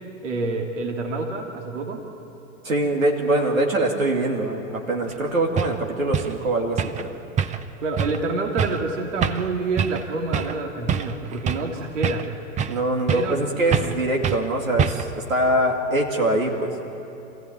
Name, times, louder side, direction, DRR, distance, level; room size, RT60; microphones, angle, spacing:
voice 1, 0.2-2.0 7.8-12.2 13.1-13.4, right 3 dB, 65° right, 2 dB, 2.6 m, -27 dB
voice 2, 2.6-7.1 12.7-16.7, right 1 dB, 80° right, 1 dB, 2.7 m, -23 dB
sound 1, 5.1-5.2 5.6-5.8 6.1-6.4 6.8-7.1 7.4-7.7 8.0-8.2 8.6-8.8 9.2-9.5 9.8-10.0 10.3-10.6 10.9-11.7 12.0-12.8 13.1-13.4 13.7-14.0 14.2-14.4 14.8-15.2, right 7 dB, 20° right, 0.7 m, -25 dB
26.0 x 15.5 x 9.1 m, 3.0 s
figure-of-eight pair, 100°, 40 cm